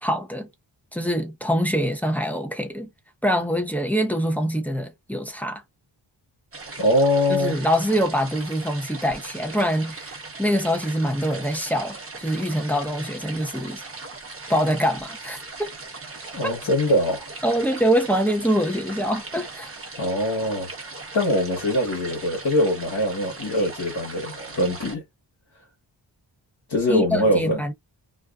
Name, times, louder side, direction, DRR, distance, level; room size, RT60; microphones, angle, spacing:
voice 1, 0.0-0.5 0.9-2.9 3.2-5.6 7.3-13.8 14.5-15.7 16.4-16.6 17.4-19.7 26.9-27.7, equal, 5° left, 0.6 m, -24 dB
sound 1, 6.5-25.0, right 3 dB, 30° right, 0.8 m, -39 dB
voice 2, 6.8-7.6 16.3-17.2 20.0-25.0 26.7-27.6, left 1 dB, 55° left, 1.2 m, -23 dB
2.4 x 2.4 x 2.3 m
wide cardioid pair, 80°, 46 cm